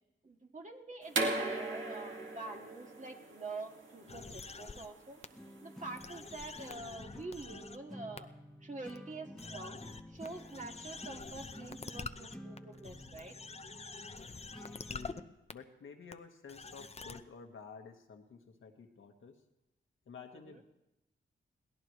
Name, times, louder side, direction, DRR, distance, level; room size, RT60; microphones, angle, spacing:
voice 1, 0.2-5.2 5.6-8.3 8.6-9.8 10.1-13.4 20.3-20.6, right 3 dB, 35° right, 1 dB, 2.1 m, -46 dB
sound 1, 1.1-6.7, right 2 dB, 70° right, 2.1 m, -38 dB
sound 2, 4.1-4.9 5.2-5.3 5.9-7.8 8.2-8.3 8.9-9.0 9.4-15.2 15.5-15.6 16.1-16.2 16.5-17.2, left 4 dB, 30° left, 0.7 m, -46 dB
sound 3, 5.3-15.3, equal, ahead, 1.6 m, -52 dB
voice 2, 14.9-19.4 20.0-20.6, left 5 dB, 80° left, 3 dB, 1.6 m, -52 dB
22.5 x 16.5 x 3.2 m, 0.91 s
cardioid pair, 60°, 21 cm